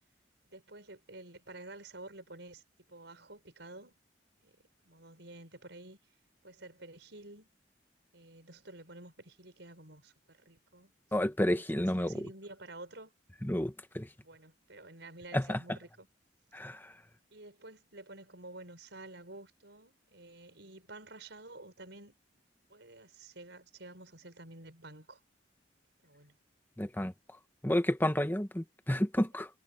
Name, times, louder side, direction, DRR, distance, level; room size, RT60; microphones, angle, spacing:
voice 1, 0.5-2.6 2.9-4.0 4.4-4.6 4.8-6.0 6.4-7.5 8.1-10.9 11.2-13.1 14.2-16.1 17.3-22.1 22.7-25.2 26.0-26.4, right 2 dB, 70° right, 6.7 m, -50 dB
voice 2, 11.1-12.3 13.4-14.1 15.3-15.6 16.5-16.9 26.8-27.1 27.6-29.5, left 1 dB, 10° left, 1.2 m, -30 dB
head